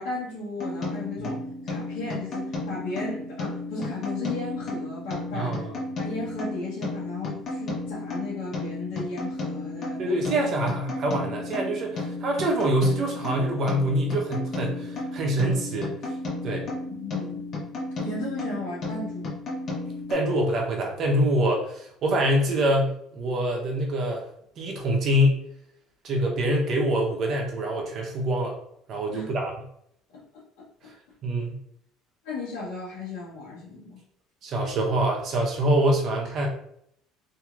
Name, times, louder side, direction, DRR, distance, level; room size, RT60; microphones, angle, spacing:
voice 1, 0.0-5.7 6.0-10.3 16.9-17.5 18.0-19.4 29.1-29.4 30.1-30.6 32.2-34.0, left 3 dB, 85° left, -8 dB, 0.9 m, -35 dB
sound 1, 0.6-20.1, left 2 dB, 45° left, 1.1 m, -33 dB
voice 2, 5.3-5.7 10.0-15.9 16.4-16.7 20.1-24.2 24.6-25.4 26.0-28.5 28.9-29.5 31.2-31.6 34.4-36.5, right 1 dB, 50° right, 1 dB, 0.8 m, -25 dB
2.9 x 2.7 x 2.4 m, 0.69 s
supercardioid pair, 100°, 0 cm